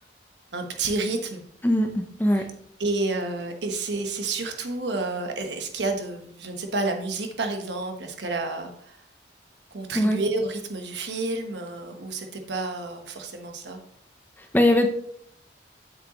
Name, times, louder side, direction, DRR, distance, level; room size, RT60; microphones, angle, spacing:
voice 1, 0.5-1.4 2.4-2.5 2.8-9.0 9.7-13.8, right 3 dB, 70° right, 4 dB, 1.2 m, -30 dB
voice 2, 1.6-2.4 9.9-10.2 14.5-14.9, left 1 dB, 10° left, 5 dB, 0.7 m, -20 dB
7.8 x 7.5 x 3.0 m, 0.65 s
head